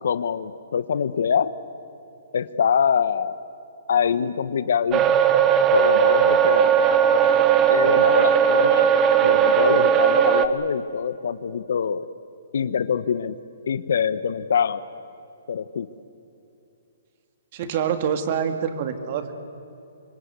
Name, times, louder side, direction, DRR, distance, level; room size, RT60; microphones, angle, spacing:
voice 1, 0.0-1.5 2.3-3.4 3.9-5.2 5.7-7.0 7.7-8.9 9.2-12.0 12.5-13.4 13.7-14.9 15.5-15.9, left 7 dB, 65° left, 14 dB, 0.9 m, -24 dB
sound 1, 4.9-10.5, right 8 dB, 15° right, 0.9 m, -18 dB
voice 2, 17.5-19.3, right 8 dB, 35° right, 8 dB, 2.0 m, -26 dB
25.0 x 22.5 x 8.2 m, 2.7 s
hypercardioid pair, 160°, 0 cm